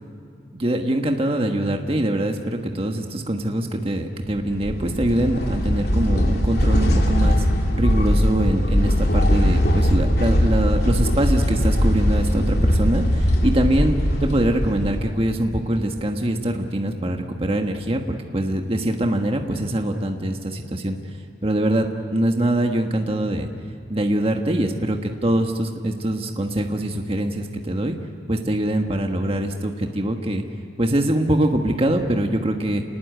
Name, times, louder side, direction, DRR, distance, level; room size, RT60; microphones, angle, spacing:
voice 1, 0.5-7.4 7.8-21.0 21.4-21.9 22.1-23.5 23.9-28.0 28.3-30.4 30.8-32.8, right 1 dB, 35° right, 3 dB, 1.5 m, -23 dB
sound 1, 4.4-15.4, equal, 60° left, 3.2 m, -20 dB
28.5 x 20.0 x 9.2 m, 2.6 s
head